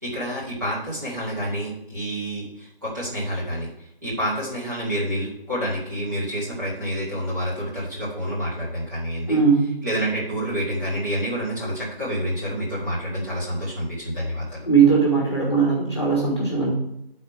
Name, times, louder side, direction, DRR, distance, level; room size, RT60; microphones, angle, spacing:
voice 1, 0.0-3.7 4.0-9.4 9.8-14.7, equal, 20° right, -10 dB, 2.2 m, -28 dB
voice 2, 9.3-9.7 14.6-16.7, right 5 dB, 25° left, -4 dB, 1.6 m, -19 dB
10.5 x 4.3 x 4.7 m, 0.80 s
figure-of-eight pair, 170°, 30 cm